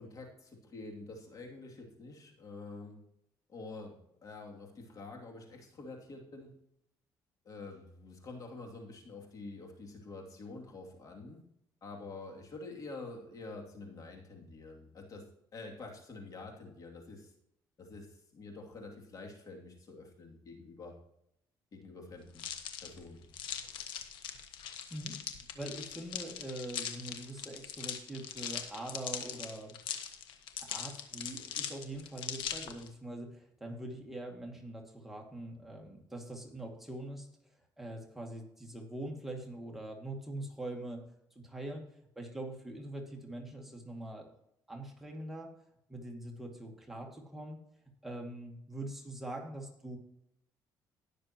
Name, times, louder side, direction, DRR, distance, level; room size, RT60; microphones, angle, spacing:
voice 1, 0.0-3.0 3.5-6.5 7.4-11.4 11.8-15.3 15.5-17.3 17.8-18.1 18.3-21.0 21.7-22.5 22.8-23.2, left 3 dB, 45° left, 1 dB, 2.7 m, -47 dB
sound 1, 22.3-32.9, left 9 dB, 80° left, 1.3 m, -41 dB
voice 2, 25.5-29.8 30.6-37.3 37.8-41.0 41.4-41.9 42.2-44.3 44.7-45.5 45.9-47.6 48.0-50.0, right 1 dB, 5° right, -1 dB, 2.2 m, -43 dB
19.0 x 6.7 x 3.0 m, 0.76 s
cardioid pair, 100°, 8 cm